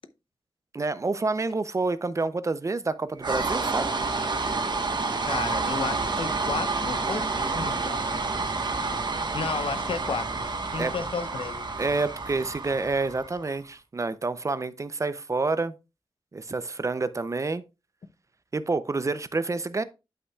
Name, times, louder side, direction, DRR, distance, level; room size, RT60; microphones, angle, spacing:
voice 1, 0.7-3.9 10.8-10.9 11.8-15.7 16.3-17.6 18.5-19.8, right 3 dB, 35° right, 0.5 m, -28 dB
sound 1, 3.2-13.5, right 3 dB, 50° right, 1.2 m, -29 dB
voice 2, 5.2-8.1 9.3-10.4 10.7-11.7, left 5 dB, 70° left, 0.7 m, -33 dB
11.0 x 5.7 x 2.3 m
wide cardioid pair, 135°, 9 cm